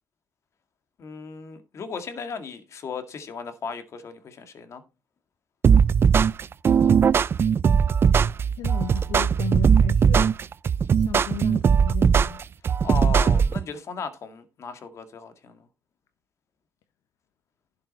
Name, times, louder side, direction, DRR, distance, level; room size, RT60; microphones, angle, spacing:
voice 1, 1.0-4.8 12.7-15.7, left 5 dB, 55° left, 1.9 m, -36 dB
sound 1, 5.6-13.6, right 7 dB, 40° right, 0.4 m, -19 dB
voice 2, 8.6-10.3 10.9-12.4, left 10 dB, 80° left, 0.9 m, -35 dB
11.5 x 6.6 x 4.2 m
cardioid pair, 90°, 6 cm